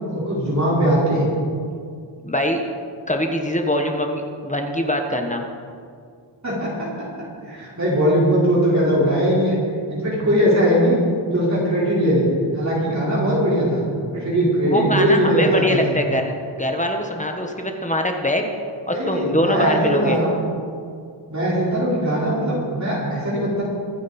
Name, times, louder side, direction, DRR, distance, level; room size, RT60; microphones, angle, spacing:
voice 1, 0.1-1.3 6.4-6.9 7.5-9.6 9.9-12.3 12.5-13.8 14.1-15.8 18.9-20.3 21.3-23.6, equal, 35° right, -7 dB, 4.5 m, -20 dB
voice 2, 2.2-2.6 3.1-5.4 14.7-16.3 16.6-18.4 18.9-20.2, left 1 dB, 15° left, 3 dB, 1.3 m, -23 dB
24.5 x 9.5 x 4.3 m, 2.2 s
wide cardioid pair, 130°, 47 cm